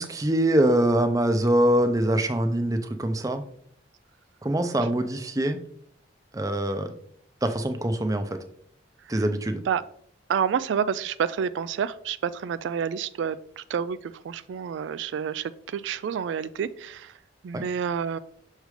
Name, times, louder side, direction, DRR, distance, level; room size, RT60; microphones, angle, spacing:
voice 1, 0.0-3.4 4.4-5.6 6.3-6.9 7.4-8.3 9.1-9.6 17.5-17.6, right 1 dB, 20° right, 7 dB, 0.6 m, -23 dB
voice 2, 10.3-17.2 17.4-18.2, right 7 dB, 75° right, 14 dB, 0.3 m, -29 dB
6.4 x 3.2 x 4.9 m, 0.63 s
head